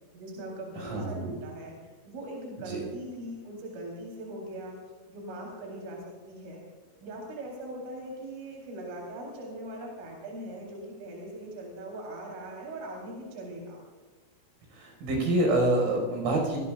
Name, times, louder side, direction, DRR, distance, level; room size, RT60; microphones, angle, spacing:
voice 1, 0.1-4.8 5.1-6.6 7.0-13.8, right 1 dB, 70° right, -2 dB, 6.5 m, -40 dB
voice 2, 0.8-1.3 2.7-2.8 14.7-16.6, right 1 dB, 85° right, 0 dB, 8.4 m, -27 dB
27.5 x 19.5 x 2.5 m, 1.4 s
omnidirectional pair, 5.9 m